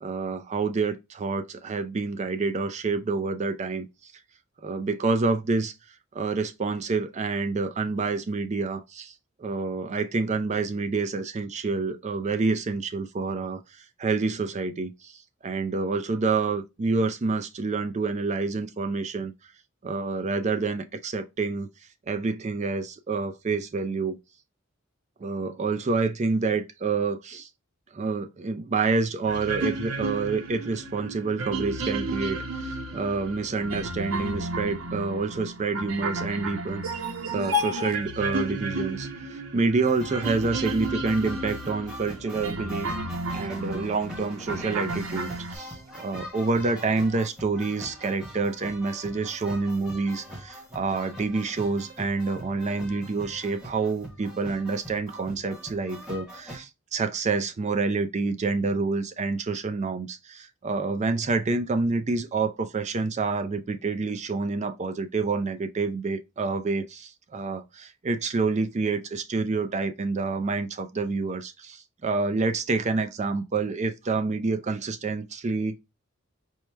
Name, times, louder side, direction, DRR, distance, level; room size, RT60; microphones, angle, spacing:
voice 1, 0.0-3.9 4.6-5.7 6.1-9.1 9.4-13.6 14.0-19.3 19.8-21.7 22.1-24.2 25.2-27.5 27.9-36.8 37.3-42.9 43.3-75.8, right 4 dB, 35° right, 0.4 m, -28 dB
sound 1, 29.3-45.6, right 1 dB, 90° right, 0.8 m, -32 dB
sound 2, 39.8-56.6, equal, 5° right, 0.9 m, -43 dB
4.6 x 2.1 x 3.3 m
head